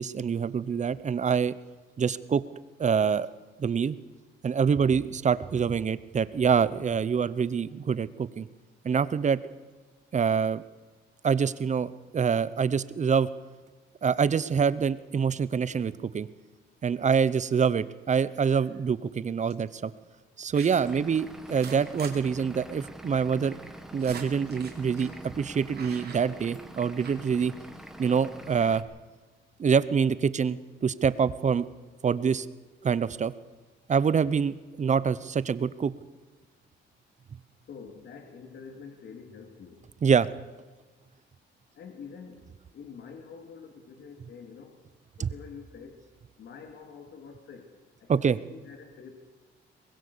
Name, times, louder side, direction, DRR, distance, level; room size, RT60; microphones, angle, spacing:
voice 1, 0.0-1.5 2.0-2.4 2.8-3.3 3.6-4.0 4.4-8.5 8.8-9.4 10.1-10.6 11.2-13.3 14.0-16.3 16.8-19.9 20.4-23.6 23.9-27.5 28.0-28.8 29.6-31.7 32.0-32.5 32.8-33.3 33.9-35.9 40.0-40.3 45.2-45.3 48.1-48.4, right 6 dB, 35° right, 16 dB, 0.8 m, -25 dB
sound 1, 18.3-18.8 19.5-19.7 20.5-21.0 21.4-22.1 22.4-22.5 22.8-22.9 23.6-25.2 25.7-26.7 27.0-27.2, right 6 dB, 50° right, 3.3 m, -45 dB
Vehicle / Engine, 20.8-28.8, right 1 dB, ahead, 1.8 m, -45 dB
voice 2, 37.6-39.8 41.7-42.5 42.7-44.8 45.2-46.0 46.4-49.2, left 6 dB, 60° left, 4 dB, 2.6 m, -46 dB
23.5 x 20.5 x 6.9 m, 1.3 s
cardioid pair, 120°, 21 cm